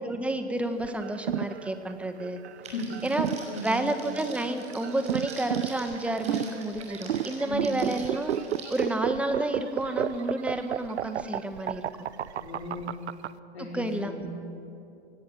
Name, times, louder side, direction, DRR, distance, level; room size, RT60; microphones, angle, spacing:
voice 1, 0.0-2.4 3.0-3.3 3.6-8.4 8.7-11.9 13.6-14.3, right 1 dB, 5° right, 7 dB, 1.5 m, -30 dB
sound 1, 0.8-13.3, right 10 dB, 80° right, 0.9 m, -32 dB
Crackle, 2.6-8.8, right 3 dB, 20° right, 5.7 m, -45 dB
voice 2, 3.5-3.9 7.4-7.8 12.4-12.9 13.5-14.4, left 1 dB, 75° left, -2 dB, 3.6 m, -36 dB
23.0 x 17.0 x 8.8 m, 2.8 s
hypercardioid pair, 130°, 33 cm